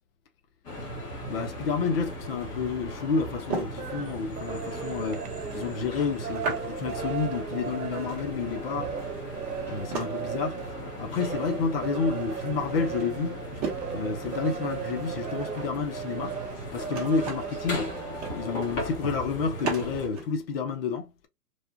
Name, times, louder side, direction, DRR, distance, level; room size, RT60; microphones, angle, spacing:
sound 1, 0.6-20.1, equal, 15° left, 1.1 m, -38 dB
voice 1, 1.3-5.3 5.5-8.9 9.7-10.6 11.0-13.4 13.9-16.4 16.7-18.0 18.3-21.1, left 5 dB, 35° left, 0.7 m, -30 dB
sound 2, 2.2-20.3, right 4 dB, 20° right, 1.1 m, -39 dB
sound 3, 3.7-18.6, right 8 dB, 65° right, 0.9 m, -37 dB
3.2 x 2.4 x 2.3 m
hypercardioid pair, 140°, 48 cm